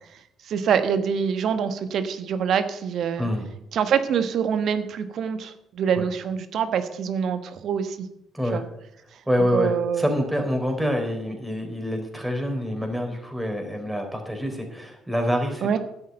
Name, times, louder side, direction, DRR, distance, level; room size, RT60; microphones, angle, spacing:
voice 1, 0.1-3.3 3.7-8.1 8.5-8.6 9.5-10.0 15.6-15.8, right 7 dB, 60° right, 10 dB, 1.3 m, -25 dB
voice 2, 9.3-15.8, equal, 5° right, 3 dB, 4.0 m, -26 dB
11.0 x 8.1 x 7.8 m, 0.78 s
hypercardioid pair, 50°, 0 cm